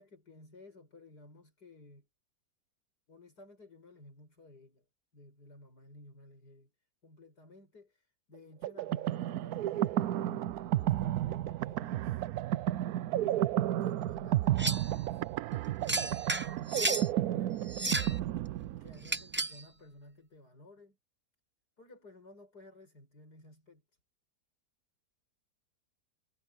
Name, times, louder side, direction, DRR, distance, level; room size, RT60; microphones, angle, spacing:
voice 1, 0.0-2.1 3.1-4.9 5.1-6.7 7.0-12.3 13.1-15.2 15.8-17.7 18.7-21.0 21.8-23.8, left 2 dB, 80° left, 8.1 m, -55 dB
sound 1, 8.6-19.2, right 13 dB, 75° right, 1.0 m, -32 dB
sound 2, 14.6-14.9 15.9-17.1 17.7-18.2 19.0-19.6, right 2 dB, 15° right, 0.5 m, -33 dB
omnidirectional pair, 1.7 m